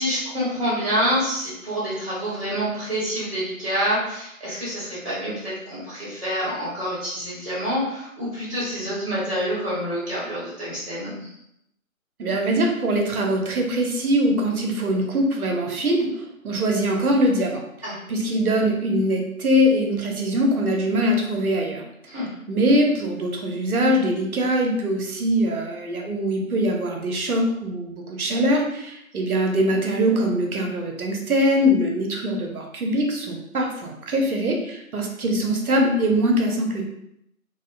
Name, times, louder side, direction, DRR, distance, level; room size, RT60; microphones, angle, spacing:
voice 1, 0.0-11.3 17.8-18.0 22.1-22.3, equal, 20° right, -9 dB, 0.9 m, -27 dB
voice 2, 12.2-17.6 18.1-21.8 22.5-36.8, equal, 80° right, 1 dB, 0.7 m, -22 dB
2.5 x 2.1 x 2.4 m, 0.79 s
figure-of-eight pair, 170°, 43 cm